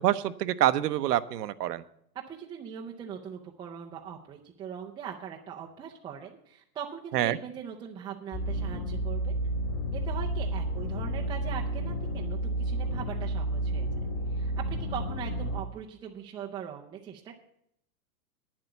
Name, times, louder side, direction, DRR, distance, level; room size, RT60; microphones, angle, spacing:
voice 1, 0.0-1.8 7.1-7.4, right 13 dB, 90° right, 13 dB, 0.9 m, -26 dB
voice 2, 2.1-9.4 9.9-13.9 14.3-17.4, right 8 dB, 10° right, -1 dB, 0.4 m, -41 dB
sound 1, 8.3-15.6, right 1 dB, 30° left, 2.3 m, -31 dB
9.7 x 7.7 x 8.0 m, 0.72 s
supercardioid pair, 145°, 46 cm